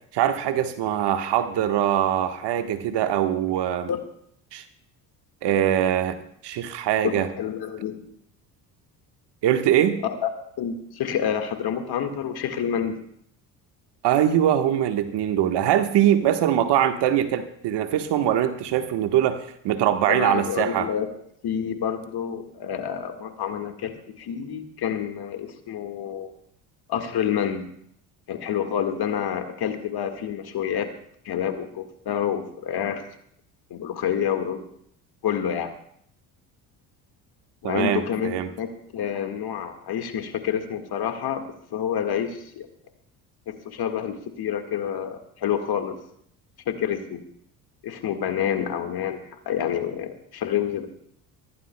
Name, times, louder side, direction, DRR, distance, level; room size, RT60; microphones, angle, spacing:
voice 1, 0.1-3.9 4.5-4.6 5.4-6.2 6.4-7.3 9.4-10.0 14.0-20.9 37.6-38.5, right 10 dB, 60° right, 8 dB, 1.4 m, -22 dB
voice 2, 7.0-8.0 10.0-10.3 10.6-13.0 20.1-21.1 21.4-26.3 26.9-27.7 28.3-30.9 31.2-33.0 33.7-34.6 35.2-35.7 37.6-41.4 41.7-42.7 43.5-46.0 46.6-47.2 47.8-50.9, left 8 dB, 50° left, 6 dB, 1.8 m, -28 dB
23.5 x 15.5 x 2.2 m, 0.68 s
hypercardioid pair, 65°, 47 cm